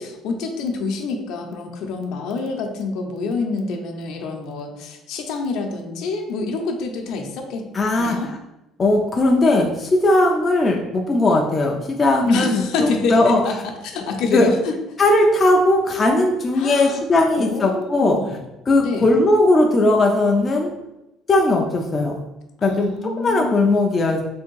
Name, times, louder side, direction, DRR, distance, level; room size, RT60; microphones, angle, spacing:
voice 1, 0.0-7.6 8.0-8.3 12.2-14.7 16.6-17.0 17.3-18.5 18.8-19.1 22.6-23.7, left 4 dB, 60° left, 3 dB, 0.6 m, -27 dB
voice 2, 7.7-8.2 8.8-13.4 14.3-14.5 15.0-18.2 18.7-20.7 21.3-22.2 22.6-24.2, left 2 dB, 20° left, 0 dB, 0.3 m, -18 dB
3.5 x 2.6 x 4.6 m, 0.96 s
cardioid pair, 180°, 0 cm